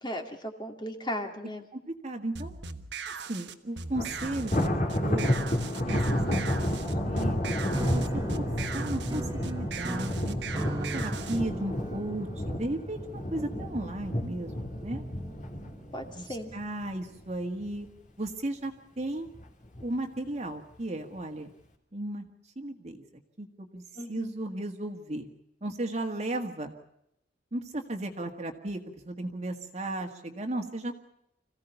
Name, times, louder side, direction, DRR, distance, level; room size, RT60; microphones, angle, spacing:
voice 1, 0.0-1.6 7.9-8.4 15.9-16.5 24.0-24.3, equal, 25° left, 4 dB, 2.3 m, -37 dB
voice 2, 1.7-2.5 3.3-4.5 4.8-5.4 5.8-6.8 7.0-7.4 7.8-8.0 8.3-8.5 8.7-10.4 10.7-15.0 16.1-17.9 18.2-18.7 19.0-19.3 19.8-21.5 21.9-22.2 22.6-23.0 23.4-23.8 24.1-25.3 25.6-26.7 27.5-30.9, right 1 dB, 40° right, 3 dB, 1.8 m, -35 dB
sound 1, 2.4-11.4, right 4 dB, 70° right, 1.4 m, -39 dB
Thunder, 3.9-17.2 17.6-17.9 18.3-18.4 19.3-19.8, left 1 dB, 45° left, 3.1 m, -31 dB
sound 2, 7.7-16.0, right 1 dB, 20° right, 0.8 m, -40 dB
26.5 x 16.0 x 7.0 m, 0.80 s
head